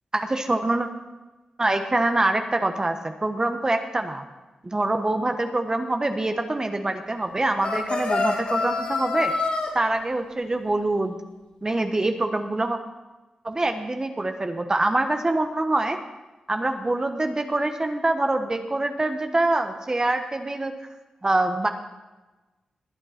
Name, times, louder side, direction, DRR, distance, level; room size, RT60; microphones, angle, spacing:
voice 1, 0.1-0.9 1.6-4.2 4.6-9.3 9.7-11.2 11.6-12.8 13.4-16.0 16.5-20.7 21.2-21.7, right 2 dB, 30° right, 6 dB, 1.2 m, -25 dB
sound 1, 7.6-9.7, left 3 dB, 60° left, 4.7 m, -26 dB
20.0 x 8.8 x 4.4 m, 1.1 s
cardioid pair, 55°, 2 cm